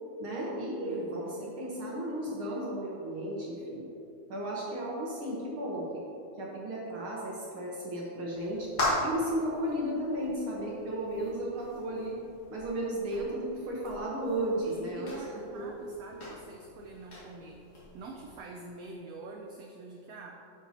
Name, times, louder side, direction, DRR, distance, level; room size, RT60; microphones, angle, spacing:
voice 1, 0.2-3.9 4.3-6.0 6.4-8.7 9.0-12.2 12.5-15.2 15.5-15.7, right 1 dB, 60° right, -5 dB, 1.5 m, -34 dB
voice 2, 0.8-1.6 14.6-17.6 17.9-20.5, right 3 dB, 90° right, 1 dB, 1.4 m, -46 dB
sound 1, 8.3-18.4, left 1 dB, 45° left, 3.0 m, -39 dB
11.0 x 7.3 x 2.9 m, 2.8 s
omnidirectional pair, 3.6 m